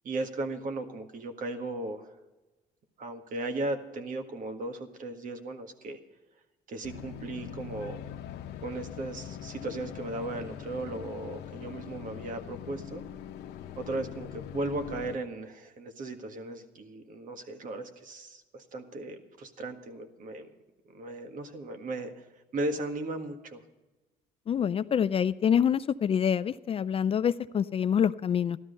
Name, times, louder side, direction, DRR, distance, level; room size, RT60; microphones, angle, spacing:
voice 1, 0.0-2.1 3.0-6.0 6.7-8.0 8.6-13.0 13.8-20.5 20.9-23.6, right 2 dB, 50° right, 6 dB, 1.7 m, -36 dB
sound 1, 6.8-15.2, left 9 dB, 80° left, 0.9 m, -42 dB
voice 2, 24.5-28.6, left 8 dB, 35° left, 15 dB, 0.4 m, -26 dB
14.0 x 12.5 x 5.4 m, 1.1 s
cardioid pair, 110°, 17 cm